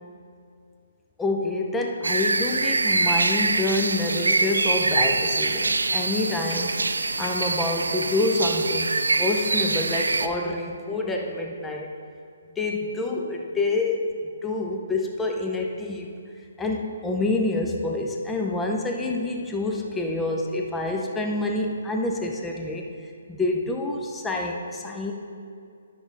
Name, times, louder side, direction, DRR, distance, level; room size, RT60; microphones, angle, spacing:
voice 1, 1.2-6.8 7.2-11.9 12.6-16.1 16.6-22.9 23.3-25.1, left 2 dB, 10° left, 1 dB, 0.7 m, -27 dB
sound 1, 2.0-10.3, right 3 dB, 80° right, 0.4 m, -24 dB
10.5 x 6.1 x 4.1 m, 2.4 s
figure-of-eight pair, 135°, 0 cm